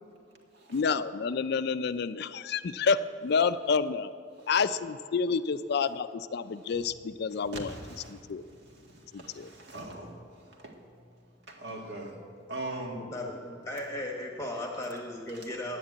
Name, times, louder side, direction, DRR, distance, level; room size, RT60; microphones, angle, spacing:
voice 1, 0.7-4.1 4.5-7.8 8.1-8.4 9.1-9.5, left 5 dB, 55° left, 13 dB, 0.4 m, -29 dB
voice 2, 7.5-8.2 9.1-10.2 10.6-10.7 11.5-12.2 12.5-13.0, right 2 dB, 60° right, 1 dB, 1.9 m, -40 dB
voice 3, 12.9-15.8, left 1 dB, 15° left, 0 dB, 1.1 m, -36 dB
10.5 x 10.0 x 8.4 m, 2.4 s
head